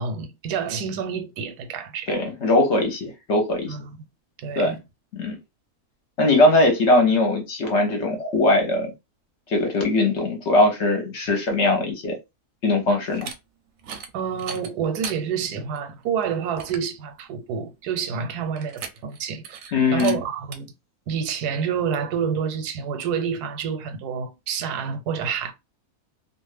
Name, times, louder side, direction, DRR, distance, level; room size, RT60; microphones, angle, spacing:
voice 1, 0.0-2.2 3.7-3.8 4.4-4.8 14.1-20.7 21.1-25.5, right 7 dB, 90° right, 1.2 m, -28 dB
voice 2, 2.1-3.7 4.6-4.7 5.2-5.4 6.2-8.9 9.5-12.1 12.6-13.3 19.7-20.2, left 2 dB, 55° left, 0.8 m, -20 dB
sound 1, 13.1-13.4 13.8-14.1 14.4-15.2 15.7-15.8 16.2-16.3 16.6-16.9 18.6-19.2 19.4-19.7 20.0-20.2 20.5-20.6, right 6 dB, 65° right, 0.9 m, -36 dB
2.5 x 2.4 x 3.1 m
omnidirectional pair, 1.6 m